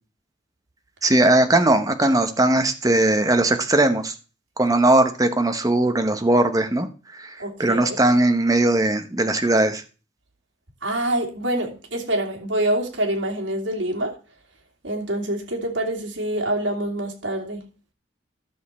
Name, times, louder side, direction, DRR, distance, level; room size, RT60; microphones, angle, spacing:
voice 1, 1.0-4.1 4.6-9.8, right 2 dB, 20° right, 8 dB, 0.9 m, -19 dB
voice 2, 7.4-8.0 10.8-14.1 14.8-17.6, right 1 dB, 80° right, 1 dB, 2.7 m, -26 dB
12.0 x 6.6 x 4.2 m, 0.34 s
head